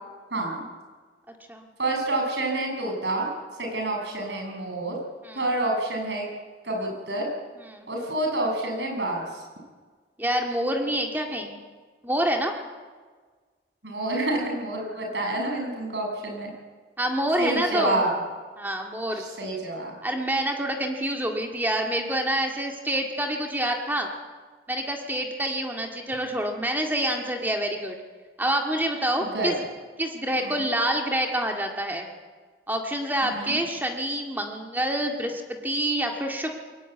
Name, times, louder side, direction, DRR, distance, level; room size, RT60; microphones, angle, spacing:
voice 1, 0.3-0.6 1.8-3.3 3.6-5.0 5.3-6.3 6.6-7.3 7.9-9.4 13.8-16.5 17.4-18.1 19.1-20.0 29.2-29.5 30.4-30.6 33.2-33.6, right 2 dB, 80° right, 2 dB, 7.3 m, -28 dB
voice 2, 10.2-11.6 12.0-12.5 17.0-18.0 18.6-19.2 20.0-24.1 24.7-28.0 28.4-29.5 30.0-32.1 32.7-36.6, right 1 dB, 10° right, 2 dB, 2.1 m, -27 dB
23.0 x 18.0 x 9.3 m, 1.5 s
head